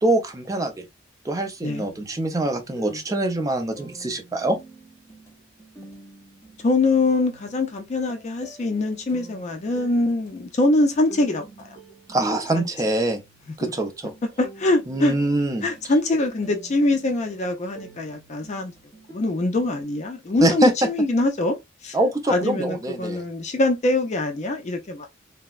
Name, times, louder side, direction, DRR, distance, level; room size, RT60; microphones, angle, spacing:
voice 1, 0.0-0.8 1.2-4.6 12.1-13.2 13.6-14.1 14.9-15.7 20.4-20.9 21.9-23.2, right 1 dB, 20° right, 0.5 m, -24 dB
sound 1, 1.9-19.8, right 3 dB, 15° left, 1.2 m, -47 dB
voice 2, 6.6-11.7 12.5-12.7 13.6-13.7 14.4-15.2 15.6-18.7 19.1-21.6 21.8-22.0 22.3-25.1, left 2 dB, 35° left, 0.4 m, -23 dB
3.3 x 2.0 x 2.2 m
head